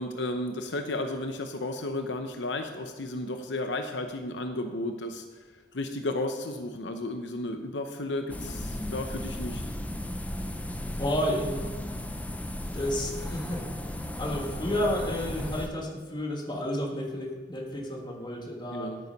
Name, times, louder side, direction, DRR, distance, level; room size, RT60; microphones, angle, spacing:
voice 1, 0.0-5.4 5.7-9.6 18.7-19.0, left 2 dB, 75° left, 6 dB, 0.8 m, -33 dB
sound 1, 8.3-15.7, left 1 dB, 10° left, 0.6 m, -35 dB
voice 2, 11.0-11.8 12.7-13.7 14.1-18.9, equal, 25° left, 1 dB, 1.6 m, -31 dB
9.7 x 8.8 x 5.3 m, 1.3 s
head